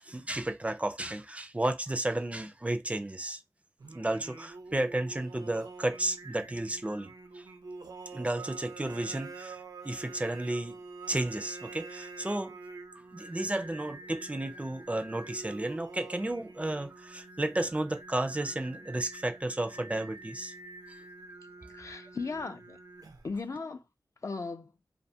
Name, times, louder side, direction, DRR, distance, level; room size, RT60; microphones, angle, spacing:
voice 1, 0.0-3.4 3.9-7.5 8.1-9.6 9.8-10.8 11.1-12.6 12.9-20.5, right 1 dB, 20° right, 0.3 m, -33 dB
Singing, 3.8-23.4, right 3 dB, 80° right, 0.5 m, -47 dB
voice 2, 21.7-22.8 23.2-23.8 24.2-24.7, left 4 dB, 50° left, 0.4 m, -37 dB
2.4 x 2.2 x 2.7 m
wide cardioid pair, 55°, 7 cm